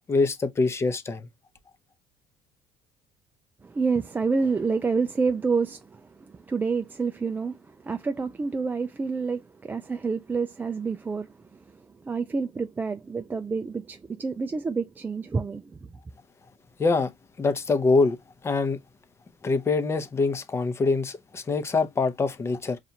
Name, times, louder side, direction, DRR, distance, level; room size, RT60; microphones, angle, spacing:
voice 1, 0.1-1.3 16.8-17.1 17.4-18.2 18.4-18.8 19.4-22.8, left 3 dB, 25° left, 0.7 m, -24 dB
voice 2, 3.6-15.8, right 4 dB, 15° right, 0.3 m, -28 dB
5.5 x 2.5 x 2.8 m
cardioid pair, 105°, 10 cm